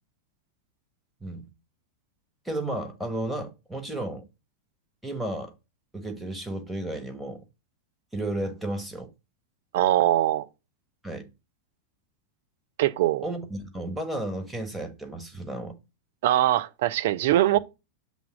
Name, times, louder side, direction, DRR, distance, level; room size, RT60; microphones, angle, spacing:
voice 1, 2.4-4.2 5.0-5.5 5.9-7.4 8.1-9.1 11.0-11.3 13.2-15.8, right 1 dB, ahead, 1.4 m, -33 dB
voice 2, 9.7-10.4 12.8-13.2 16.2-17.6, right 14 dB, 55° right, 0.5 m, -22 dB
7.1 x 3.6 x 4.8 m
figure-of-eight pair, 90°, 0 cm